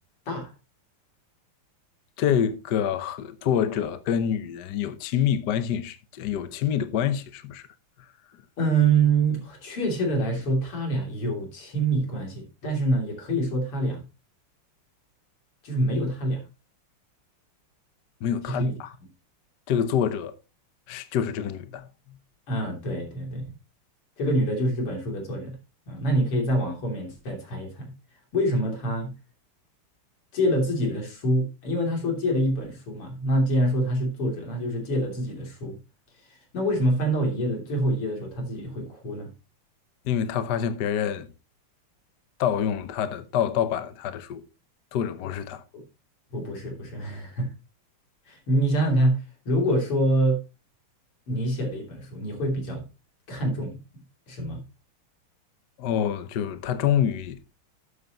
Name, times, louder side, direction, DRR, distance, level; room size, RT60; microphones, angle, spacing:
voice 1, 2.2-7.7 18.2-18.9 19.7-20.3 20.9-21.9 40.0-41.3 42.4-44.4 44.9-45.6 55.8-57.4, left 9 dB, 60° left, 1.3 m, -26 dB
voice 2, 8.6-14.0 15.6-16.4 18.5-18.7 22.5-23.4 24.2-25.6 25.9-27.9 28.3-29.1 30.3-35.8 36.5-39.3 46.3-47.5 48.3-50.4 51.3-52.8 53.3-53.8 54.3-54.6, right 1 dB, 85° left, 4.0 m, -26 dB
13.0 x 8.1 x 3.0 m
omnidirectional pair, 2.4 m